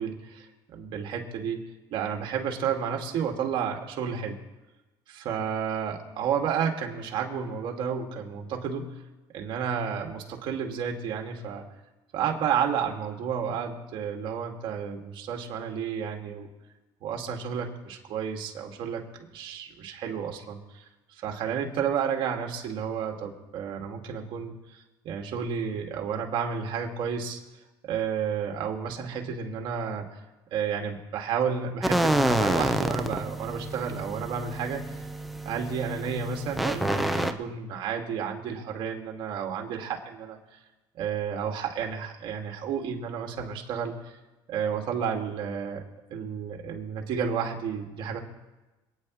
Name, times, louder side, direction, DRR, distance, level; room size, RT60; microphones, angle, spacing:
voice 1, 0.0-1.6 1.9-4.4 5.1-8.9 9.3-11.6 12.1-16.5 17.0-19.0 19.3-20.9 21.2-27.4 27.8-30.1 30.5-34.8 35.4-40.6 40.9-44.1 44.5-45.8 46.1-48.2, right 7 dB, 60° right, 2 dB, 2.2 m, -31 dB
sound 1, 31.8-37.3, right 1 dB, ahead, 0.7 m, -28 dB
27.5 x 9.5 x 3.2 m, 1.1 s
cardioid pair, 125°, 10 cm